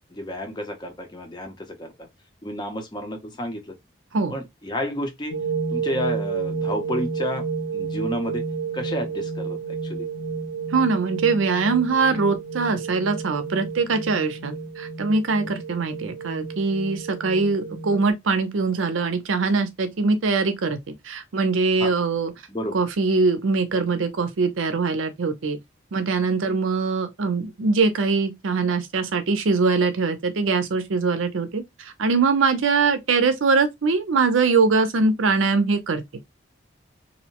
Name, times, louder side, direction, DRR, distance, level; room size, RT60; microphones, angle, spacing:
voice 1, 0.1-2.1 2.4-3.8 4.3-5.4 5.7-7.5 7.7-8.4 8.7-10.1 15.4-15.5 21.8-21.9 22.5-22.8, left 1 dB, 25° left, 0.6 m, -31 dB
sound 1, 5.3-18.1, right 5 dB, 65° left, 1.0 m, -31 dB
voice 2, 10.7-20.8 21.0-22.3 22.7-25.6 25.9-36.0, right 4 dB, 90° right, 0.6 m, -22 dB
2.7 x 2.1 x 2.8 m
head